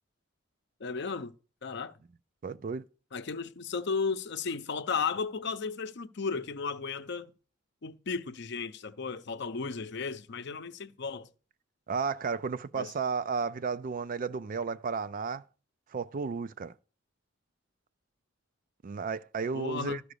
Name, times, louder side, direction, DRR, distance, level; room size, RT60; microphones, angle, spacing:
voice 1, 0.8-1.3 1.6-2.0 3.1-7.3 7.8-11.3 12.8-12.9 19.5-20.0, left 5 dB, 60° left, 0.7 m, -34 dB
voice 2, 2.4-2.8 11.9-15.4 15.9-16.7 18.8-20.0, right 5 dB, 45° right, 0.4 m, -33 dB
12.5 x 4.9 x 6.7 m
head